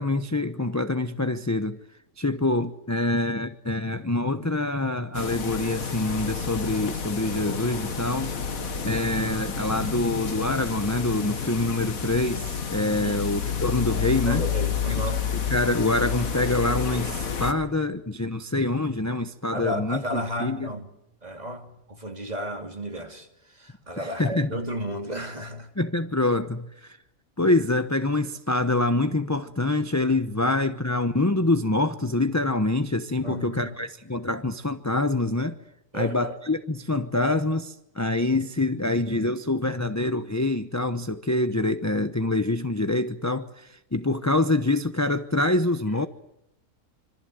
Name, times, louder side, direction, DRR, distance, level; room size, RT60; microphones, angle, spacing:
voice 1, 0.0-1.8 2.2-8.3 8.8-14.4 15.5-20.7 24.0-24.5 25.8-27.0 27.4-35.6 35.9-46.1, left 2 dB, 15° left, 0.8 m, -25 dB
sound 1, 5.1-17.5, left 6 dB, 85° left, 2.1 m, -30 dB
voice 2, 13.0-13.3 14.3-15.2 19.5-20.9 21.2-25.7 33.2-33.8 35.9-36.3, equal, 30° right, 3.0 m, -33 dB
26.0 x 26.0 x 7.9 m
omnidirectional pair, 1.4 m